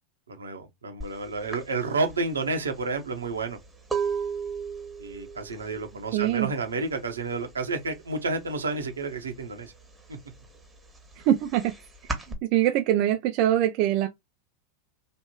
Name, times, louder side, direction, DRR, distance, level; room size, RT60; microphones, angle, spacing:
voice 1, 0.3-3.6 5.0-9.7 10.1-10.2, right 3 dB, 85° right, 1.0 m, -30 dB
sound 1, 1.0-1.2 1.5-7.2 7.5-8.0 8.3-9.4 9.8-12.4, right 5 dB, 5° right, 1.2 m, -34 dB
voice 2, 6.1-6.5 11.3-11.7 12.4-14.1, right 12 dB, 50° right, 0.4 m, -23 dB
3.2 x 2.6 x 2.9 m
figure-of-eight pair, 90°, 0 cm